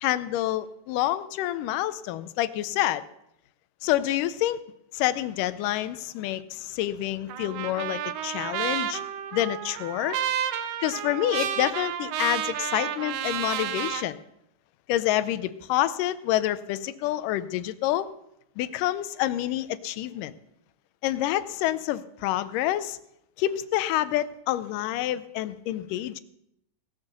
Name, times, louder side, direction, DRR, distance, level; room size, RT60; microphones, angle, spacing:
voice 1, 0.0-3.0 3.8-4.6 4.9-9.0 9.3-10.2 10.8-14.2 14.9-18.1 18.6-20.3 21.0-23.0 23.4-26.2, left 13 dB, 85° left, 15 dB, 2.2 m, -27 dB
Trumpet, 7.3-14.0, right 10 dB, 90° right, 2.4 m, -31 dB
18.5 x 7.1 x 6.6 m, 0.80 s
omnidirectional pair, 3.7 m